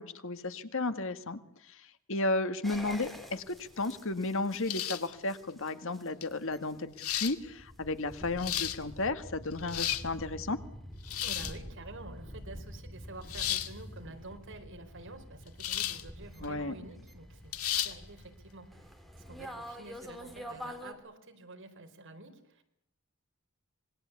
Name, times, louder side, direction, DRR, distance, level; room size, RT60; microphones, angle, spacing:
voice 1, 0.0-1.4 2.1-10.6 16.4-16.7, left 2 dB, 65° left, 10 dB, 1.8 m, -33 dB
sound 1, 2.6-20.9, equal, ahead, 3.8 m, -47 dB
sound 2, 4.7-5.1 6.2-6.3 7.0-7.4 8.2-8.8 9.5-10.1 11.0-11.6 13.3-13.7 15.6-16.0 16.4-16.5 17.5-17.9, left 12 dB, 80° left, 2.0 m, -33 dB
voice 2, 11.2-22.6, right 2 dB, 60° right, 6 dB, 4.6 m, -49 dB
26.5 x 22.0 x 8.3 m, 0.76 s
head